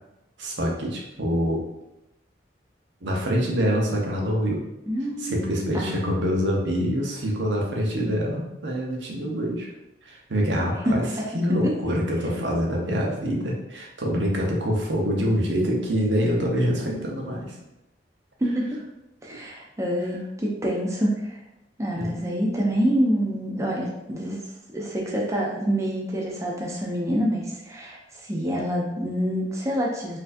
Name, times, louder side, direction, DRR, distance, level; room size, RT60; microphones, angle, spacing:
voice 1, 0.4-1.6 3.0-4.6 5.2-9.7 10.0-11.0 11.3-17.6 22.0-22.2, equal, 75° right, -1 dB, 0.8 m, -25 dB
voice 2, 4.9-5.4 5.7-6.1 10.9-11.3 18.4-18.8 19.2-21.4 21.8-24.4 24.7-30.2, equal, 15° right, -2 dB, 0.5 m, -26 dB
4.3 x 2.6 x 2.6 m, 0.91 s
head